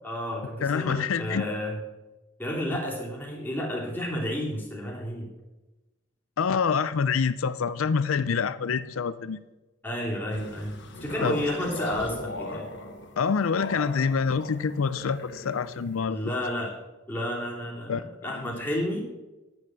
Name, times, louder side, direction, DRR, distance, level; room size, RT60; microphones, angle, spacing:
voice 1, 0.0-1.8 2.4-5.3 9.8-12.7 16.1-16.8 17.1-19.0, left 1 dB, 10° left, -3 dB, 2.9 m, -31 dB
voice 2, 0.6-1.5 6.4-9.4 11.2-11.4 13.2-16.3 17.9-18.0 18.4-18.5, left 6 dB, 90° left, 14 dB, 0.5 m, -26 dB
sound 1, 10.3-16.0, left 2 dB, 60° left, 1.4 m, -39 dB
9.4 x 9.3 x 7.6 m, 1.1 s
head